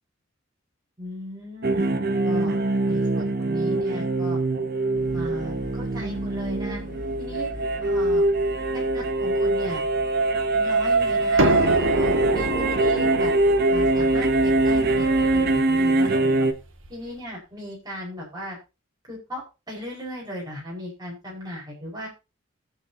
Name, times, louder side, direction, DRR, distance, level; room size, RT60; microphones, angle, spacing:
voice 1, 1.0-2.6 2.9-4.4 5.1-6.8 7.2-7.5 7.8-8.2 8.7-9.8 10.5-11.5 11.9-13.3 13.7-16.5 16.9-18.6 19.1-22.1, equal, 20° right, -4 dB, 5.0 m, -37 dB
sound 1, 1.6-16.5, right 2 dB, 50° right, 1.0 m, -23 dB
sound 2, 4.9-15.6, left 1 dB, 40° left, 2.0 m, -40 dB
sound 3, 11.4-17.0, right 1 dB, 75° right, 1.7 m, -28 dB
20.0 x 7.1 x 2.8 m, 0.28 s
head